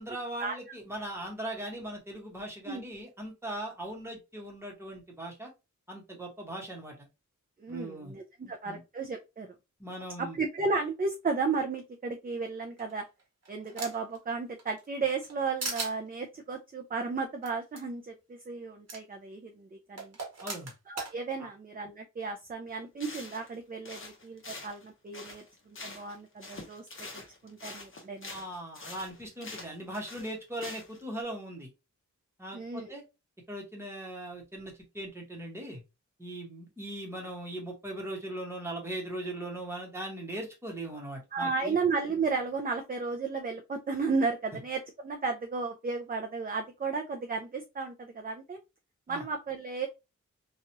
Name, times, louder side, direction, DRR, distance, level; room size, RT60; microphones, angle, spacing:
voice 1, 0.0-5.5 5.9-7.1 7.7-8.1 8.4-8.8 9.8-10.4 20.4-20.7 21.4-21.5 28.3-31.7 32.4-33.0 33.5-35.8 36.2-41.8 49.1-49.2, right 1 dB, 10° right, -1 dB, 1.0 m, -39 dB
voice 2, 7.6-9.5 10.2-13.0 13.5-20.2 20.9-28.3 32.5-32.9 41.3-48.6 49.1-49.9, right 4 dB, 30° right, 4 dB, 0.4 m, -34 dB
sound 1, 12.8-14.2 14.6-15.3 15.6-15.9 17.4-17.5 17.8-17.9 18.9-19.0 20.0-21.1, right 3 dB, 55° right, 1.0 m, -38 dB
sound 2, 22.7-22.8 23.0-23.6 23.8-26.2 26.4-31.0, left 3 dB, 40° left, 0.8 m, -45 dB
3.0 x 2.3 x 2.7 m, 0.25 s
wide cardioid pair, 115°, 31 cm